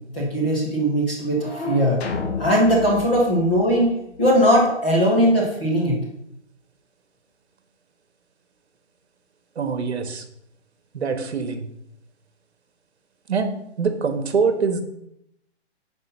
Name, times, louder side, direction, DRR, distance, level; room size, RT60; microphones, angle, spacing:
voice 1, 0.1-2.0 2.4-6.0, equal, 10° left, -5 dB, 0.6 m, -19 dB
sound 1, 2.0-4.5, left 5 dB, 65° left, 1.5 m, -32 dB
voice 2, 9.5-10.2 10.9-11.7 13.3-13.5 13.8-14.8, right 5 dB, 65° right, 9 dB, 1.5 m, -24 dB
9.7 x 5.2 x 5.6 m, 0.79 s
hypercardioid pair, 165°, 35 cm